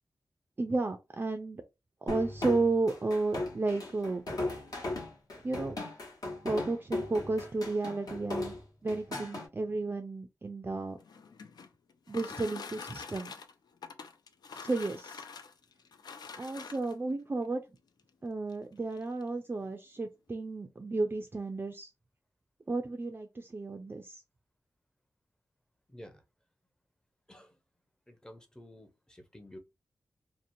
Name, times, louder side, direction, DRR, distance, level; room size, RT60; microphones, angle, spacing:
voice 1, 0.6-1.6 2.0-4.2 5.4-5.8 6.4-8.5 8.8-11.0 12.1-13.3 14.5-15.2 16.4-17.6 18.2-21.9 22.7-24.2, right 3 dB, 30° right, 0.4 m, -33 dB
sound 1, 2.1-9.5, left 2 dB, 65° left, 1.1 m, -37 dB
sound 2, 10.9-17.1 18.0-18.1 18.5-18.6 18.9-19.3, left 5 dB, 80° left, 0.4 m, -46 dB
voice 2, 25.9-26.2 27.3-27.6 28.1-29.6, left 1 dB, 10° left, 0.6 m, -51 dB
2.8 x 2.1 x 2.6 m
wide cardioid pair, 95°, 7 cm